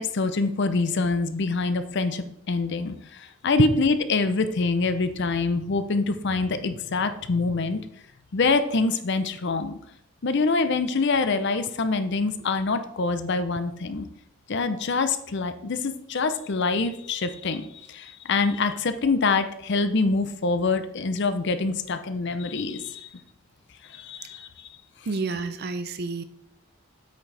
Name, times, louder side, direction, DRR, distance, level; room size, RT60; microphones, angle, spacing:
voice 1, 0.0-7.9 8.3-9.8 10.2-14.1 14.5-23.1 23.8-24.7, left 3 dB, 50° left, 11 dB, 0.6 m, -25 dB
voice 2, 25.1-26.2, right 3 dB, 45° right, 10 dB, 0.5 m, -30 dB
8.3 x 6.3 x 3.3 m, 0.73 s
head